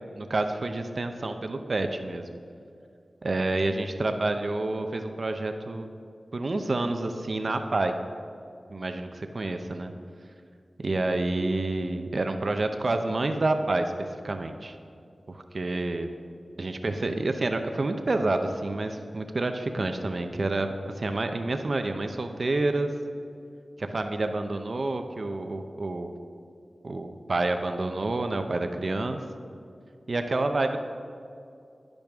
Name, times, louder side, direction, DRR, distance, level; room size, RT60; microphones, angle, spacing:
voice 1, 0.2-2.3 3.2-5.9 6.3-7.9 8.7-9.9 10.8-13.9 14.2-14.8 15.3-16.1 16.6-22.9 23.8-26.2 26.8-29.2 30.1-30.8, right 2 dB, 55° right, 6 dB, 0.6 m, -28 dB
10.5 x 10.5 x 3.5 m, 2.5 s
wide cardioid pair, 90°, 0 cm